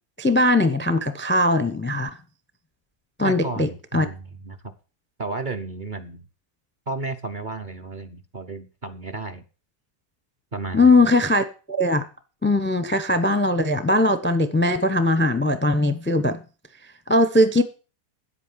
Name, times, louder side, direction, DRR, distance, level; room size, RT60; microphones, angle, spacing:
voice 1, 0.2-2.1 3.2-3.7 3.9-4.1 10.7-12.0 12.4-16.4 17.1-17.6, left 1 dB, 10° left, 0.6 m, -20 dB
voice 2, 3.2-4.6 5.2-6.3 6.9-9.4 10.5-10.9, right 3 dB, 40° right, 0.8 m, -33 dB
10.0 x 8.4 x 7.4 m
omnidirectional pair, 1.8 m